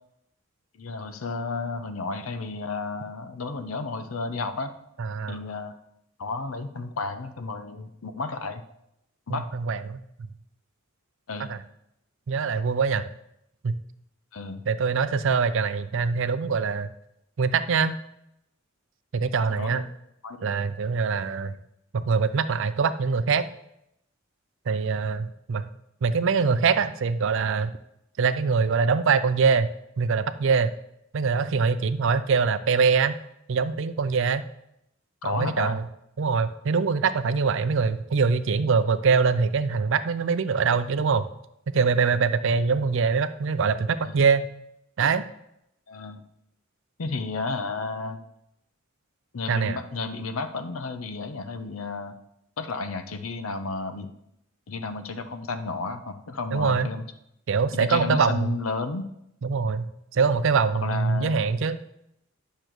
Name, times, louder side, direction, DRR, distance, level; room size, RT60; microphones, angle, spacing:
voice 1, 0.7-4.7 5.3-5.7 6.2-8.6 9.3-9.5 11.3-11.5 14.3-14.6 19.4-19.8 20.2-20.5 35.2-35.8 44.0-44.2 45.9-46.2 47.0-48.2 49.3-52.1 52.6-54.1 54.7-57.1 57.7-59.1 60.8-61.4, left 3 dB, 90° left, 9 dB, 0.7 m, -32 dB
voice 2, 5.0-5.4 9.3-10.0 11.5-11.6 12.3-13.1 13.6-13.8 14.7-16.9 17.4-18.0 19.1-19.8 20.4-21.6 21.9-23.4 24.7-25.6 26.0-27.7 28.2-29.7 30.0-30.7 31.1-33.1 33.5-34.4 35.2-35.9 36.2-41.3 41.7-44.5 45.0-45.2 49.5-49.8 56.5-56.9 57.5-58.6 59.4-59.9 60.1-61.8, right 5 dB, 65° right, 13 dB, 0.5 m, -23 dB
10.0 x 6.6 x 3.0 m, 0.80 s
head